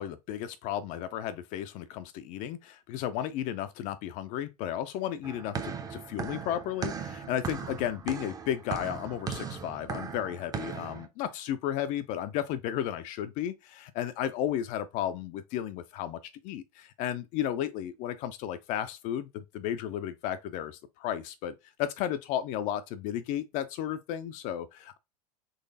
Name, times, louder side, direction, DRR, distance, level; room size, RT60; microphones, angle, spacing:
voice 1, 0.0-21.5 21.8-25.0, left 11 dB, 45° left, 0.4 m, -33 dB
sound 1, 5.2-11.1, right 6 dB, 20° right, 0.6 m, -38 dB
3.9 x 3.1 x 2.6 m
figure-of-eight pair, 80°, 19 cm